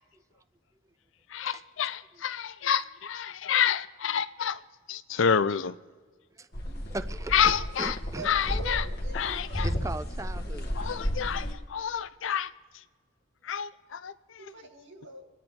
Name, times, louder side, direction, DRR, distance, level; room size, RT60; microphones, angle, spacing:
voice 1, 1.3-4.6 4.9-5.7 7.3-8.0 8.2-8.8 9.1-9.7 10.8-12.5 13.4-14.4, left 8 dB, 70° left, 0.5 m, -28 dB
voice 2, 6.3-8.6 9.6-10.8, right 2 dB, 15° right, 0.5 m, -39 dB
sound 1, 6.5-11.5, equal, 50° left, 1.7 m, -33 dB
voice 3, 8.1-9.9 14.4-15.2, right 1 dB, 65° right, 2.5 m, -43 dB
27.5 x 10.0 x 3.7 m
head